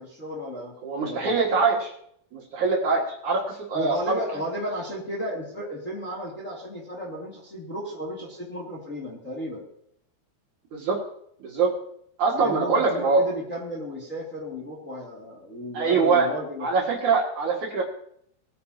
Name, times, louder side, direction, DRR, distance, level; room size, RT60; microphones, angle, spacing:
voice 1, 0.0-1.4 3.7-9.6 12.3-16.7, equal, 25° left, -3 dB, 2.3 m, -34 dB
voice 2, 0.8-1.9 2.3-4.2 10.7-11.0 11.4-11.7 12.2-13.2 15.7-16.3 16.6-17.8, right 4 dB, 55° right, -2 dB, 3.0 m, -23 dB
21.0 x 9.5 x 2.9 m, 0.69 s
omnidirectional pair, 4.7 m